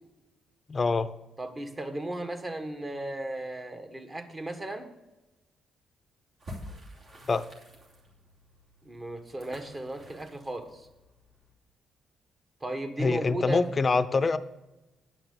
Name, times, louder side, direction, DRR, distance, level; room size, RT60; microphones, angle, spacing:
voice 1, 0.7-1.1 7.3-7.5 13.0-14.4, left 4 dB, 35° left, 13 dB, 0.6 m, -25 dB
voice 2, 1.4-4.9 8.8-10.9 12.6-13.6, right 1 dB, 20° right, 7 dB, 1.4 m, -35 dB
sound 1, 6.4-11.5, left 1 dB, 55° right, 2.9 m, -49 dB
9.2 x 6.0 x 6.8 m, 1.0 s
cardioid pair, 90°, 0 cm